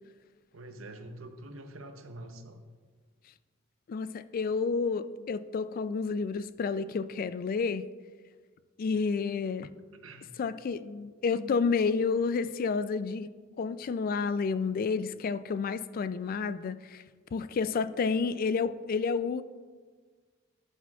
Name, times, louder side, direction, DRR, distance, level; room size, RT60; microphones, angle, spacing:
voice 1, 0.5-2.6 10.0-10.3, right 1 dB, 80° right, 0.8 m, -45 dB
voice 2, 3.9-7.9 8.8-9.7 10.4-13.3 13.6-17.0 17.3-19.4, left 5 dB, 45° left, 0.3 m, -30 dB
12.0 x 8.4 x 2.3 m
head